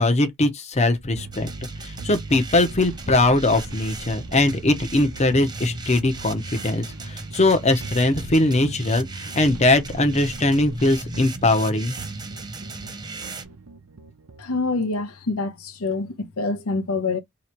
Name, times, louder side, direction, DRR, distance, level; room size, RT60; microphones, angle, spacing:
voice 1, 0.0-1.5 1.8-9.1 9.3-11.9, left 2 dB, 30° left, 0.8 m, -21 dB
sound 1, 1.2-14.5, right 4 dB, 75° right, 0.7 m, -41 dB
sound 2, 1.3-13.4, right 2 dB, 20° right, 0.6 m, -36 dB
voice 2, 14.4-17.2, left 3 dB, 85° left, 0.9 m, -26 dB
3.1 x 2.9 x 4.5 m
head